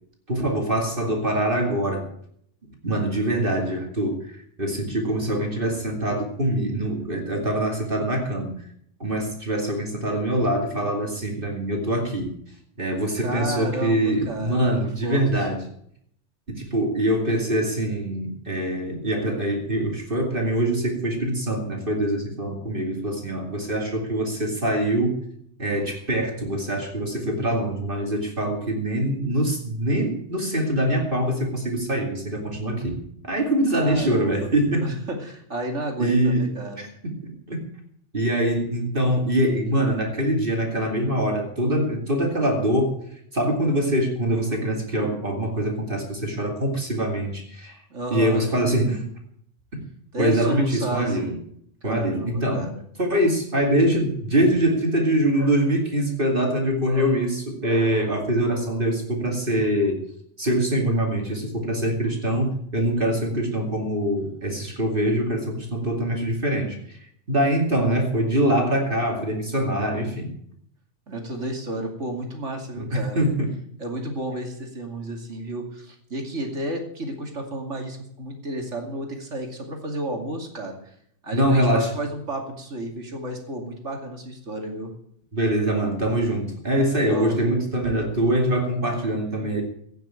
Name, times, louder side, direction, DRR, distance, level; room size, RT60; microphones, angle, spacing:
voice 1, 0.3-2.1 2.8-8.6 9.0-12.3 12.8-15.6 16.5-25.2 25.6-33.0 33.2-34.9 36.0-36.5 36.8-37.6 38.1-43.0 43.3-47.8 48.1-49.0 49.7-49.8 50.2-51.4 51.8-52.7 53.0-60.0 60.4-67.0 67.3-70.3 72.8-73.5 81.3-81.9 85.3-89.6, right 1 dB, 45° right, 1 dB, 2.7 m, -24 dB
voice 2, 13.2-15.5 33.8-34.5 34.8-36.9 47.9-48.4 50.1-51.4 51.8-52.8 71.1-73.2 73.8-80.9 81.2-84.9 87.1-87.4, right 1 dB, 75° right, 2 dB, 2.9 m, -32 dB
16.5 x 6.9 x 8.7 m, 0.69 s
omnidirectional pair, 1.3 m